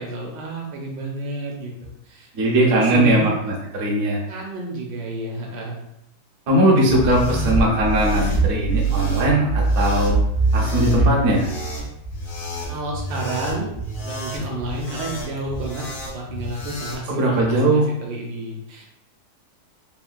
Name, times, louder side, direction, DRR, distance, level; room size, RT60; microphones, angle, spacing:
voice 1, 0.0-2.3 2.8-3.3 4.3-5.8 12.7-13.7 14.0-18.9, right 1 dB, 75° right, -1 dB, 1.2 m, -30 dB
voice 2, 2.3-3.3 3.7-4.2 6.5-10.2 10.5-11.5 17.1-17.8, right 1 dB, 60° right, -2 dB, 1.0 m, -19 dB
sound 1, 6.9-17.0, right 2 dB, 75° left, 0.6 m, -25 dB
3.5 x 2.1 x 2.4 m, 0.78 s
omnidirectional pair, 2.1 m